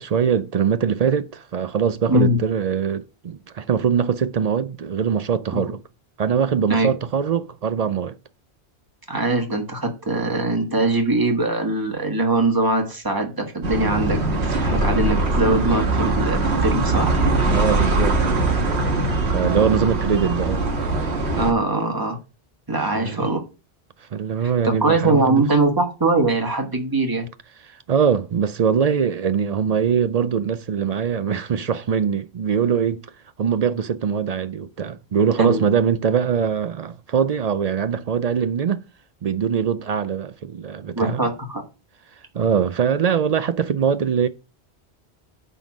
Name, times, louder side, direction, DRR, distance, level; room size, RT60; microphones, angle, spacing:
voice 1, 0.0-5.8 6.2-8.2 17.5-18.2 19.2-20.7 22.8-23.2 24.1-25.5 27.7-33.1 33.4-38.8 39.2-41.2 42.3-44.3, right 7 dB, 55° right, 0.4 m, -22 dB
voice 2, 9.1-17.1 21.3-22.2 22.7-23.4 24.6-27.3 35.4-35.6 40.9-41.6, right 2 dB, 20° right, 1.6 m, -22 dB
sound 1, 13.6-21.5, right 2 dB, 90° right, 1.7 m, -21 dB
8.8 x 3.9 x 6.0 m
omnidirectional pair, 1.1 m